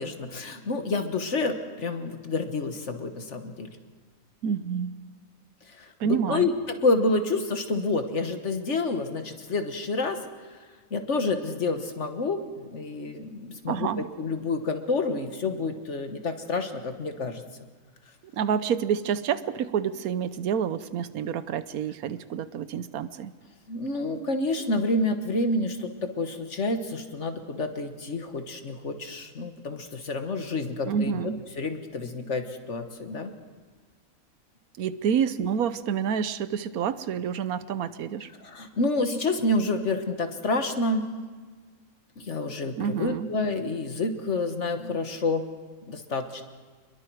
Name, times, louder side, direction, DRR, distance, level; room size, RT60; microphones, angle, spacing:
voice 1, 0.0-3.7 5.7-10.2 10.5-10.6 10.9-13.9 14.2-17.7 23.7-31.2 31.6-33.3 38.4-41.0 42.2-45.5 45.9-46.4, left 2 dB, 55° left, 7 dB, 1.6 m, -28 dB
voice 2, 4.4-5.0 6.0-6.5 13.7-14.1 18.3-23.3 30.8-31.4 34.8-38.3 42.8-43.3, right 7 dB, 80° right, 14 dB, 1.3 m, -28 dB
28.0 x 22.0 x 4.7 m, 1.5 s
omnidirectional pair, 1.5 m